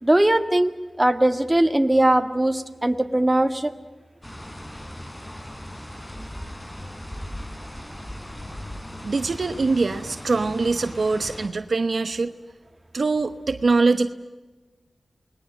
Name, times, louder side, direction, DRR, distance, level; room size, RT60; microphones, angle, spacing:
voice 1, 0.0-0.7 1.0-3.7, right 1 dB, 20° right, 8 dB, 2.0 m, -20 dB
sound 1, 4.2-11.5, equal, 15° left, 3.7 m, -38 dB
voice 2, 9.0-12.3 12.9-14.1, right 3 dB, 70° right, 10 dB, 1.0 m, -23 dB
29.0 x 20.5 x 7.6 m, 1.2 s
cardioid pair, 40°, 0 cm